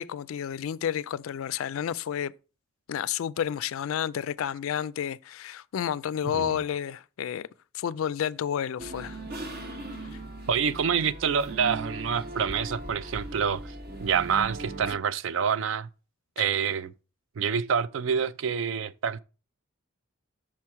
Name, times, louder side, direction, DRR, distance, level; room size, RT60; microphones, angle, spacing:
voice 1, 0.0-2.3 2.9-7.5 7.7-9.2 16.4-16.5, left 9 dB, 70° left, 0.3 m, -31 dB
voice 2, 6.2-6.6 10.5-13.7 14.0-15.9 16.4-16.9 17.4-19.2, right 7 dB, 60° right, 0.3 m, -27 dB
sound 1, 8.8-15.0, right 2 dB, 45° right, 1.3 m, -39 dB
6.1 x 4.4 x 4.7 m
head